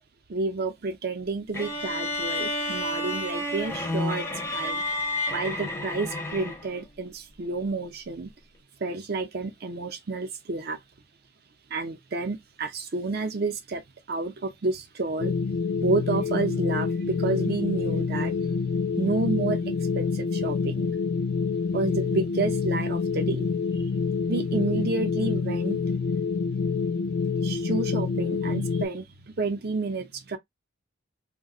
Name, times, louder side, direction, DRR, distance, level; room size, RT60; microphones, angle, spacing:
voice 1, 0.3-4.3 4.5-4.8 5.3-8.3 8.8-10.8 11.7-13.8 14.1-15.3 15.8-18.4 19.0-20.9 21.7-23.5 24.3-25.8 27.4-30.4, right 3 dB, 50° right, 0.6 m, -30 dB
sound 1, 1.5-6.8, left 1 dB, 10° left, 0.5 m, -30 dB
sound 2, 15.2-28.9, left 5 dB, 80° left, 0.4 m, -27 dB
2.4 x 2.2 x 3.7 m
head